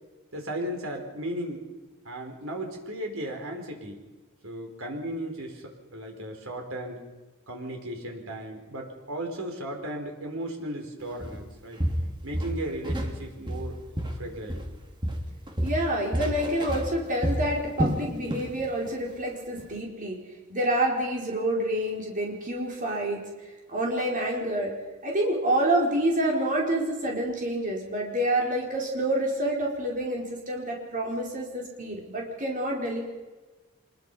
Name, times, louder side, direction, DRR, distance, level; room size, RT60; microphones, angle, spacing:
voice 1, 0.3-1.7 2.0-4.0 4.4-7.0 7.5-11.8 12.2-13.8 14.1-14.7, right 1 dB, 70° right, 2 dB, 4.9 m, -36 dB
Walk footsteps, 11.2-11.4 11.8-13.2 13.5-14.8 15.0-18.6 18.9-19.1 19.6-19.7, equal, 25° right, 2.6 m, -29 dB
voice 2, 15.6-20.2 20.5-23.2 23.7-24.7 25.0-33.0, right 1 dB, 40° right, -1 dB, 4.6 m, -28 dB
25.5 x 21.5 x 5.7 m, 1.3 s
head